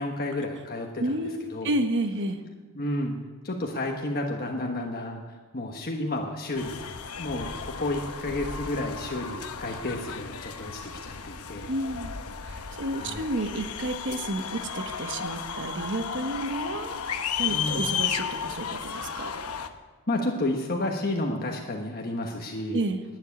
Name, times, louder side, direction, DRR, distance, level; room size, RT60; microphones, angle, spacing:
voice 1, 0.0-1.1 1.5-1.7 2.7-3.1 3.4-6.8 7.2-11.7 12.9-13.3 17.5-17.9 20.1-22.8, left 1 dB, 40° left, 1 dB, 1.2 m, -31 dB
voice 2, 1.0-2.4 11.7-12.2 12.5-16.9 17.4-19.3 22.7-23.0, right 1 dB, 55° right, 7 dB, 1.1 m, -31 dB
sound 1, 6.6-19.7, left 7 dB, 85° left, 1.0 m, -34 dB
12.0 x 9.6 x 9.5 m, 1.4 s
head